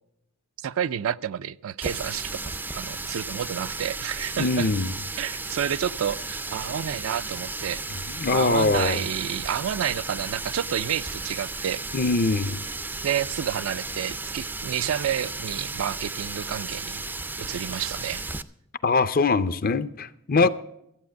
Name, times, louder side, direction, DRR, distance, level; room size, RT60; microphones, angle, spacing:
voice 1, 0.6-4.7 5.2-7.8 8.3-11.8 13.0-17.0 17.4-18.2 20.4-20.5, right 9 dB, 75° right, 0.4 m, -30 dB
Water tap faucet, 1.8-18.4, right 3 dB, 10° right, 0.4 m, -34 dB
voice 2, 4.4-5.0 8.1-9.0 11.9-12.6 18.8-20.5, left 3 dB, 45° left, 0.5 m, -22 dB
14.0 x 8.5 x 6.4 m
head